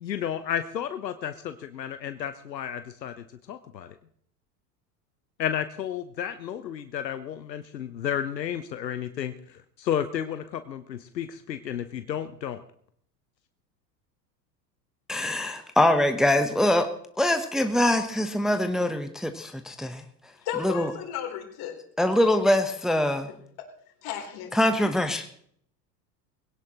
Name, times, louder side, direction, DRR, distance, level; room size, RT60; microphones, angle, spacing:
voice 1, 0.0-3.1 3.5-3.9 5.4-12.6, left 9 dB, 80° left, 10 dB, 0.9 m, -32 dB
voice 2, 15.1-16.9 17.2-20.0 20.6-20.9 22.0-23.3 24.5-25.3, left 1 dB, ahead, 7 dB, 1.0 m, -23 dB
voice 3, 20.4-21.8 22.3-22.4 23.3-23.7 24.0-24.5 24.8-25.1, left 10 dB, 45° left, 3 dB, 3.7 m, -35 dB
21.0 x 17.0 x 3.0 m, 0.65 s
figure-of-eight pair, 80°, 50 cm